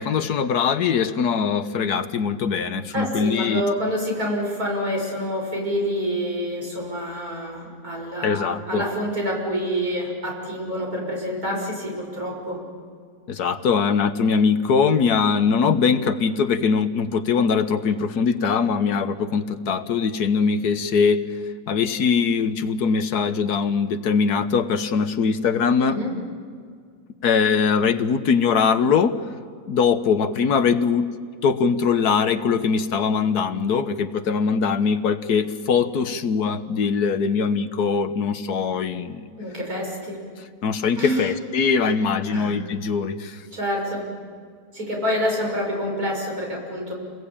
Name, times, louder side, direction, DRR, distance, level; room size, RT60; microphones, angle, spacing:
voice 1, 0.0-3.6 8.2-8.8 13.3-21.2 21.7-26.0 27.2-29.2 29.7-31.1 31.4-39.3 40.6-43.4, left 6 dB, 85° left, 10 dB, 1.7 m, -21 dB
voice 2, 2.9-12.6 25.8-26.1 39.4-40.2 41.0-41.3 41.8-41.9 42.3-42.5 43.5-44.1 44.7-46.9, equal, 70° right, -1 dB, 7.0 m, -27 dB
30.0 x 21.0 x 8.8 m, 2.1 s
omnidirectional pair, 1.6 m